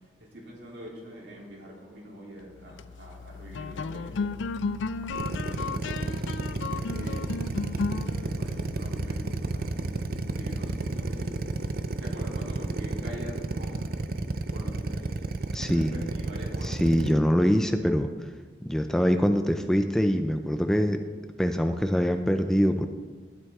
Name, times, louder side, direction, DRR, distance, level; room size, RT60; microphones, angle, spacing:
voice 1, 0.3-4.4 5.1-6.0 6.5-7.5 8.3-9.9 10.2-11.5 12.0-14.0 14.5-15.2 15.7-16.8, equal, 75° right, -4 dB, 3.3 m, -44 dB
sound 1, 2.6-12.2, left 4 dB, 85° left, 0.4 m, -36 dB
Drill, 5.1-17.1, right 3 dB, 50° right, 0.5 m, -31 dB
voice 2, 15.5-15.9 16.6-18.3 18.6-21.0 21.4-22.9, equal, 5° left, 6 dB, 0.4 m, -24 dB
12.0 x 11.0 x 3.6 m, 1.4 s
head